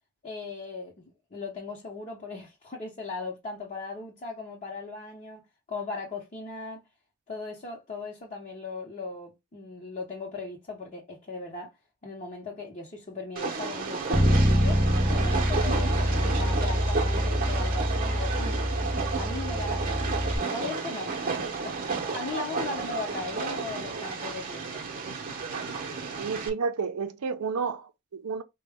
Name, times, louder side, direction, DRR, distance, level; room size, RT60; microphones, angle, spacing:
voice 1, 0.2-6.8 7.3-11.7 12.0-18.7 19.2-20.1 20.5-24.8, left 3 dB, 35° left, 0.8 m, -38 dB
Train, 13.4-26.5, right 4 dB, 40° right, 0.8 m, -32 dB
Bass guitar, 14.1-20.4, equal, 5° right, 0.6 m, -25 dB
voice 2, 26.2-28.4, right 5 dB, 75° right, 0.5 m, -31 dB
4.0 x 2.2 x 3.4 m
head